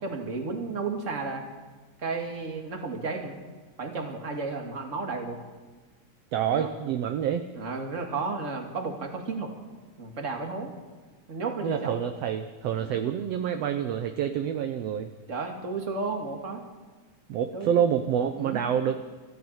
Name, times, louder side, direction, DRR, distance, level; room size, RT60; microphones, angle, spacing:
voice 1, 0.0-1.4 2.0-3.4 3.8-5.4 6.5-6.7 7.5-9.5 10.0-10.7 11.3-12.0 12.8-13.0 15.3-16.7 17.5-17.9 18.4-18.7, right 4 dB, 25° right, 3 dB, 2.3 m, -33 dB
voice 2, 6.3-7.5 11.6-15.1 17.3-19.0, right 9 dB, 70° right, 7 dB, 1.7 m, -27 dB
20.5 x 14.5 x 8.8 m, 1.3 s
omnidirectional pair, 3.5 m